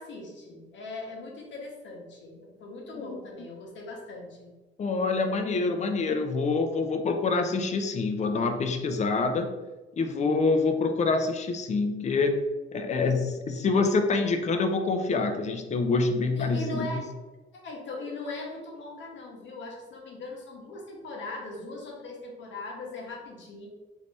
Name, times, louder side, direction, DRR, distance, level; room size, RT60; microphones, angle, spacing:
voice 1, 0.0-4.5 16.4-17.0 17.5-23.7, left 2 dB, 70° left, -1 dB, 1.0 m, -40 dB
voice 2, 4.8-9.5 10.0-12.3 12.7-17.0, left 3 dB, 35° left, 6 dB, 0.5 m, -26 dB
3.2 x 2.7 x 3.2 m, 1.2 s
cardioid pair, 90°, 20 cm